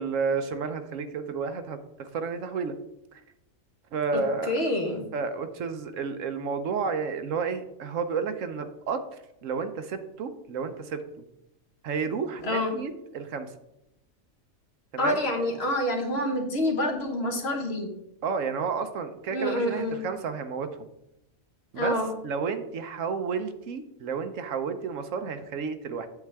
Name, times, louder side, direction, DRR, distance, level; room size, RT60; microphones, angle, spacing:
voice 1, 0.0-2.7 3.9-4.5 5.1-9.0 9.4-11.0 11.8-13.5 14.9-15.2 18.2-20.9 21.7-22.0 22.2-26.1, right 5 dB, 70° right, 9 dB, 1.0 m, -31 dB
voice 2, 4.1-5.0 12.4-12.7 15.0-17.9 19.3-20.0 21.7-22.1, left 1 dB, 50° left, 3 dB, 1.4 m, -27 dB
8.1 x 7.4 x 3.4 m, 0.86 s
omnidirectional pair, 1.4 m